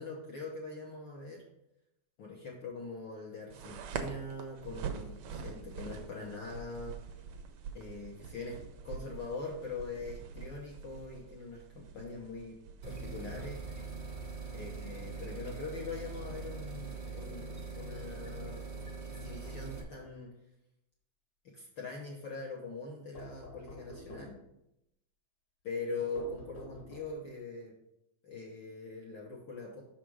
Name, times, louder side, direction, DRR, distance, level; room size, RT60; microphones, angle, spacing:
voice 1, 0.0-1.4 2.2-7.0 7.7-8.6 8.8-11.6 11.9-12.6 12.8-13.6 14.5-17.5 17.8-18.7 19.0-20.3 21.4-24.4 25.6-27.7 28.2-29.8, left 3 dB, 75° left, -2 dB, 1.0 m, -42 dB
sound 1, 3.5-17.0, right 6 dB, 80° right, 1.3 m, -46 dB
sound 2, 12.8-19.8, right 4 dB, 50° right, 0.8 m, -42 dB
sound 3, 19.2-20.2 23.1-24.5 26.1-27.3, left 1 dB, 55° left, 1.2 m, -49 dB
6.1 x 5.0 x 4.6 m, 0.86 s
omnidirectional pair, 3.4 m